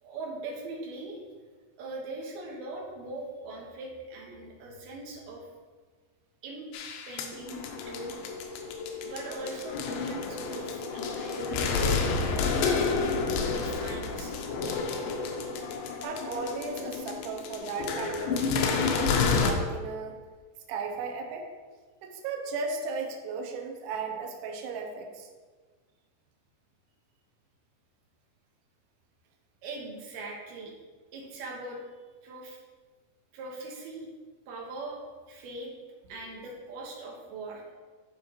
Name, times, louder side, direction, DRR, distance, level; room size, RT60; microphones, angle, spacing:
voice 1, 0.0-1.2 1.8-5.5 6.4-6.7 7.1-8.2 9.0-12.0 12.2-12.7 13.5-14.3 29.6-30.7 31.1-31.8 32.2-32.6 33.3-34.1 34.5-35.0 35.3-35.7 36.1-37.6, right 2 dB, 70° right, -2 dB, 3.0 m, -40 dB
sound 1, 6.7-19.5, left 4 dB, 80° left, 2.9 m, -30 dB
voice 2, 16.0-18.4 18.8-20.2 20.7-21.5 22.0-25.3, right 4 dB, 85° right, 3 dB, 2.1 m, -36 dB
12.5 x 4.7 x 3.0 m, 1.4 s
omnidirectional pair, 5.1 m